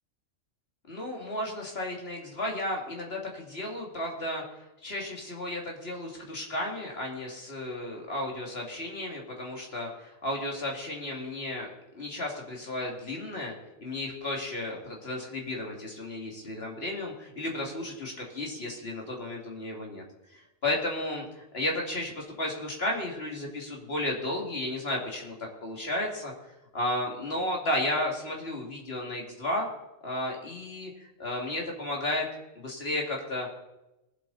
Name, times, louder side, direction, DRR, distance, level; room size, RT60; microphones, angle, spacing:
voice 1, 0.9-4.4 4.8-11.7 11.9-13.5 13.8-20.0 20.3-25.4 25.6-26.3 26.7-29.7 30.0-32.3 32.5-33.5, left 1 dB, 55° left, 0 dB, 2.8 m, -33 dB
19.5 x 8.0 x 4.1 m, 0.95 s
omnidirectional pair, 1.3 m